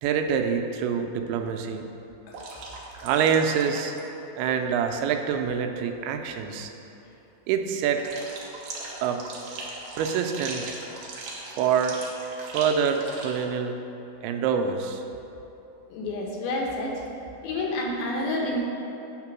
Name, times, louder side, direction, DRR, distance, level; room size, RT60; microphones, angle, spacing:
voice 1, 0.0-1.8 3.0-3.9 4.4-6.7 7.5-8.0 9.0-9.2 10.0-10.8 11.6-12.0 12.4-13.8 14.2-15.0, right 7 dB, 85° right, 5 dB, 2.5 m, -26 dB
sound 1, 2.3-4.1 4.4-4.6 8.0-13.4, right 3 dB, 70° right, 2.1 m, -39 dB
voice 2, 15.9-17.0 17.4-18.6, left 1 dB, 80° left, -1 dB, 2.8 m, -29 dB
8.9 x 3.7 x 6.0 m, 2.9 s
omnidirectional pair, 4.4 m